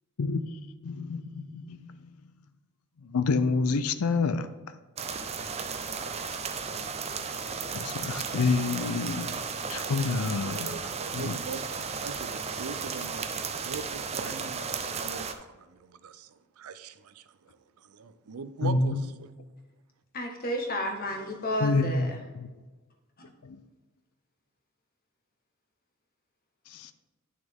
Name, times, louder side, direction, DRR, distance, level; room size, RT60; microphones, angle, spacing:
voice 1, 0.8-2.0 3.0-4.5 7.7-9.3 9.7-10.8 11.1-11.4 18.6-19.0 21.6-22.1 22.3-22.5 23.4-23.6 26.7-26.9, left 3 dB, 85° left, 0.5 m, -28 dB
sound 1, 5.0-15.3, right 5 dB, 30° right, 0.6 m, -34 dB
voice 2, 9.8-17.2 17.9-19.3, right 4 dB, 85° right, 0.5 m, -42 dB
voice 3, 20.1-22.2 23.2-23.3, left 1 dB, 45° left, 1.4 m, -31 dB
9.9 x 6.2 x 3.6 m
head